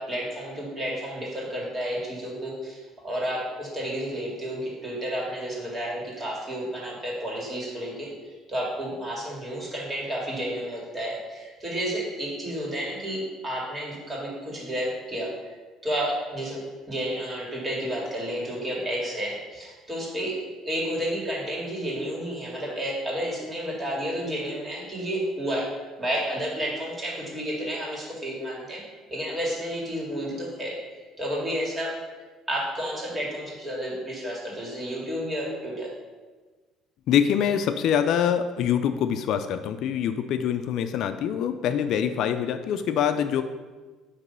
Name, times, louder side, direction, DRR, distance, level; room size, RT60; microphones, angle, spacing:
voice 1, 0.0-8.1 8.5-15.3 15.8-16.6 16.9-20.4 20.6-25.7 26.0-28.8 29.1-30.8 31.2-32.0 32.5-35.9, equal, 20° right, -3 dB, 2.1 m, -31 dB
voice 2, 37.1-43.4, left 8 dB, 60° left, 9 dB, 0.3 m, -24 dB
7.9 x 3.0 x 5.5 m, 1.3 s
cardioid pair, 135°, 0 cm